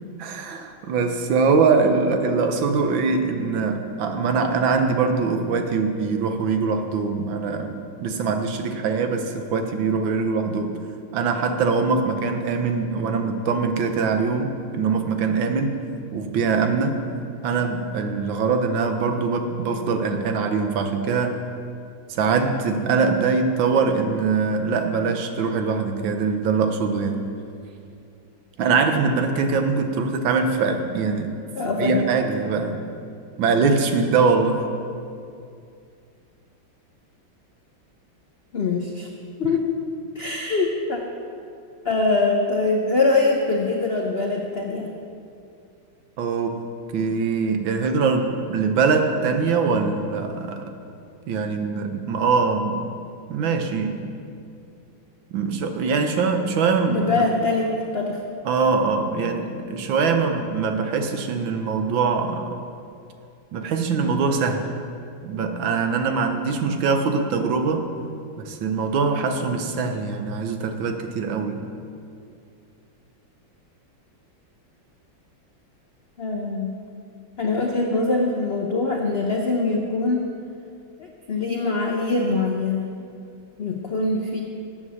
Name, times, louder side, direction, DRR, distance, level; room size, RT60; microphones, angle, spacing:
voice 1, 0.2-10.7 11.1-15.8 16.1-17.0 17.4-21.4 22.1-27.3 28.6-31.4 31.8-32.8 33.4-34.6 46.2-46.6 46.9-50.7 51.3-52.8 53.3-54.0 55.3-57.3 58.4-62.5 63.5-64.7 65.2-67.9 68.4-71.6, right 4 dB, 75° right, 6 dB, 1.5 m, -23 dB
voice 2, 31.6-32.2 38.5-39.1 39.4-39.7 40.1-41.0 41.8-44.9 56.9-58.2 76.2-76.9 77.4-80.2 81.0-83.0 83.6-84.4, left 3 dB, 70° left, 1 dB, 0.5 m, -23 dB
9.6 x 7.9 x 6.3 m, 2.5 s
omnidirectional pair, 2.2 m